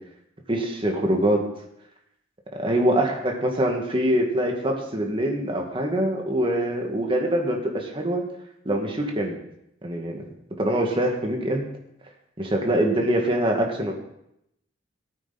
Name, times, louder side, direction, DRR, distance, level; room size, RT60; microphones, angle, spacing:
voice 1, 0.5-1.5 2.6-8.2 8.7-9.4 9.8-10.2 10.6-11.7 12.4-13.9, right 1 dB, 30° right, 1 dB, 2.1 m, -24 dB
18.0 x 9.0 x 4.2 m, 0.79 s
head